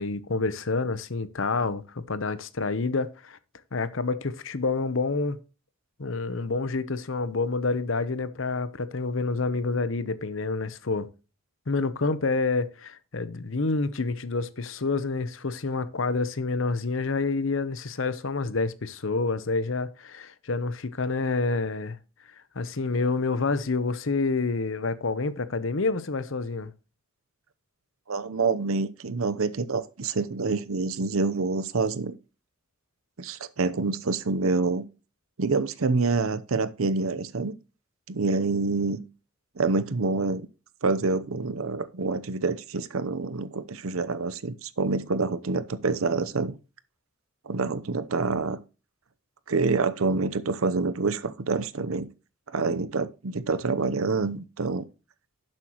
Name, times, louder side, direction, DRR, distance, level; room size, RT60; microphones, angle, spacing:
voice 1, 0.0-3.4 3.7-5.4 6.0-11.1 11.7-22.0 22.5-26.7, left 3 dB, 65° left, 0.8 m, -28 dB
voice 2, 28.1-32.1 33.2-34.8 35.4-37.5 38.1-39.0 39.6-40.5 40.8-46.5 47.5-48.6 49.5-52.1 52.5-54.8, right 3 dB, 75° right, 0.8 m, -27 dB
11.0 x 7.6 x 3.0 m
head